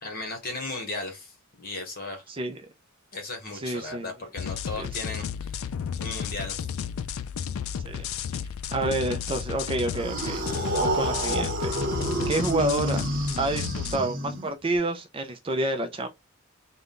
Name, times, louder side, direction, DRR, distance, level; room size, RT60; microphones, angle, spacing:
voice 1, 0.0-2.2 3.1-5.2 5.9-6.6, left 2 dB, 45° left, 1.3 m, -36 dB
voice 2, 3.5-4.1 4.8-4.9 7.8-8.0 8.7-10.4 10.8-11.8 12.3-13.0 13.4-16.2, right 2 dB, 25° right, 0.4 m, -29 dB
sound 1, 4.4-14.0, left 8 dB, 65° left, 0.3 m, -33 dB
sound 2, 9.9-14.8, right 2 dB, 40° right, 0.9 m, -29 dB
3.7 x 2.2 x 3.7 m
head